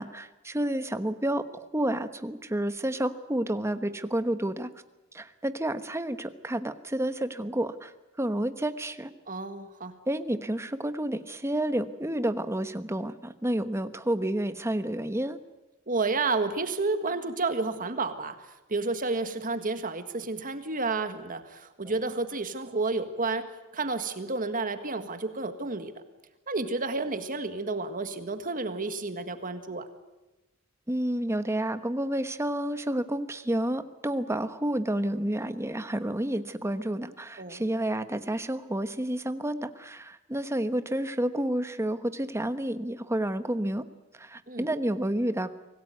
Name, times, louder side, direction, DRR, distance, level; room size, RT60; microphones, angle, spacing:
voice 1, 0.0-1.4 1.7-4.7 5.1-9.1 10.1-15.4 30.9-43.8 44.2-45.5, right 1 dB, 15° right, 10 dB, 1.1 m, -30 dB
voice 2, 9.3-10.0 15.9-18.4 18.7-25.9 26.5-29.9 37.4-37.6 44.5-44.7, right 3 dB, 40° right, 9 dB, 1.7 m, -31 dB
25.0 x 18.0 x 9.4 m, 1.0 s
head